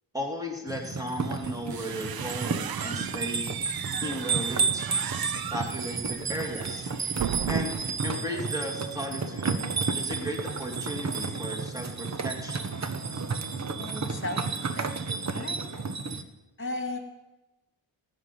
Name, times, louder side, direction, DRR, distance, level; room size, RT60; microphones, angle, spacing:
voice 1, 0.1-4.9 5.5-6.9 7.5-9.5 10.0-12.7, equal, 10° right, 1 dB, 2.5 m, -35 dB
sound 1, 0.7-16.2, right 4 dB, 35° right, 1.0 m, -31 dB
sound 2, 1.4-8.0, right 9 dB, 55° right, 0.6 m, -36 dB
voice 2, 13.8-15.9 16.6-17.0, left 2 dB, 25° left, 6 dB, 2.2 m, -36 dB
15.5 x 5.8 x 9.8 m, 1.0 s
wide cardioid pair, 110°, 45 cm